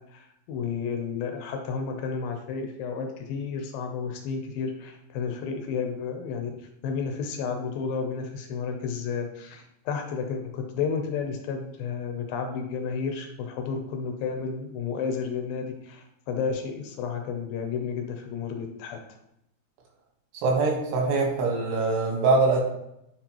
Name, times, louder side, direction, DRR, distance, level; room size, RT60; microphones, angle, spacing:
voice 1, 0.1-19.0, left 5 dB, 75° left, 4 dB, 2.3 m, -32 dB
voice 2, 20.3-22.6, right 3 dB, 90° right, 0 dB, 3.5 m, -23 dB
9.5 x 4.2 x 3.0 m, 0.80 s
omnidirectional pair, 4.6 m